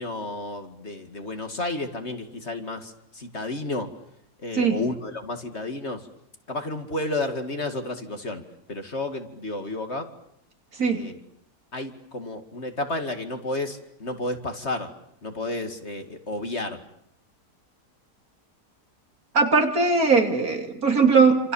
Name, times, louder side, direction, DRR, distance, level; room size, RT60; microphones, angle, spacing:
voice 1, 0.0-3.9 4.4-6.1 6.5-8.4 8.7-10.1 10.9-11.2 11.7-14.9 15.2-16.8, left 2 dB, 40° left, 6 dB, 2.4 m, -31 dB
voice 2, 19.3-21.5, right 4 dB, 60° right, 4 dB, 3.4 m, -20 dB
28.5 x 27.0 x 7.2 m, 0.74 s
omnidirectional pair, 1.7 m